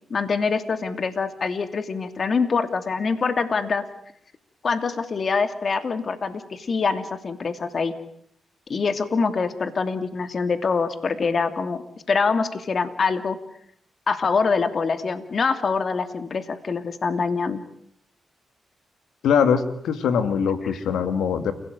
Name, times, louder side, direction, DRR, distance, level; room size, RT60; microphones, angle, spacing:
voice 1, 0.1-3.8 4.6-7.9 8.7-13.4 14.1-17.6 20.6-20.8, left 4 dB, 55° left, 10 dB, 2.7 m, -24 dB
voice 2, 19.2-21.5, left 7 dB, 85° left, 10 dB, 2.3 m, -22 dB
29.5 x 18.0 x 9.3 m, 0.68 s
supercardioid pair, 55°, 0 cm